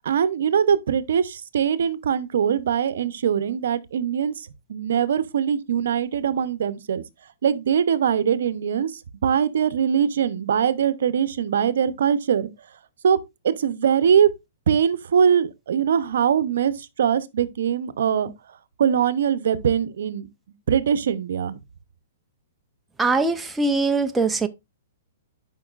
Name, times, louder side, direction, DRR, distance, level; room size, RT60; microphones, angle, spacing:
voice 1, 0.0-7.0 7.4-12.5 13.0-13.2 13.4-14.3 14.7-18.3 18.8-20.3 20.7-21.6, right 8 dB, 75° right, 0.7 m, -22 dB
voice 2, 23.0-24.5, right 3 dB, 5° right, 0.4 m, -22 dB
11.0 x 5.3 x 2.4 m
hypercardioid pair, 160°, 0 cm